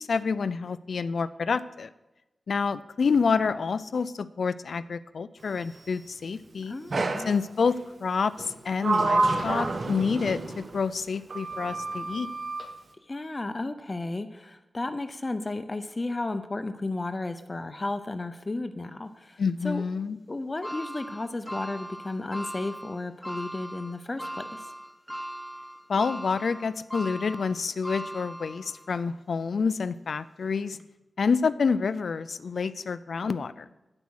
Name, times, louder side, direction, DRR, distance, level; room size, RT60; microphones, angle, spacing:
voice 1, 0.0-1.9 2.5-6.8 7.3-12.3 19.4-20.2 25.9-30.8 31.2-33.6, left 5 dB, 75° left, 15 dB, 0.4 m, -28 dB
voice 2, 6.7-7.3 13.1-19.8 20.3-24.6, left 2 dB, 30° left, 10 dB, 0.6 m, -33 dB
Sliding door, 6.9-7.4 8.4-10.8 11.3-12.7, right 3 dB, 60° right, 1.1 m, -28 dB
sound 1, 20.6-29.0 29.5-29.6 30.7-30.8, equal, ahead, 1.1 m, -39 dB
9.8 x 8.2 x 6.3 m, 1.0 s
wide cardioid pair, 95°, 0 cm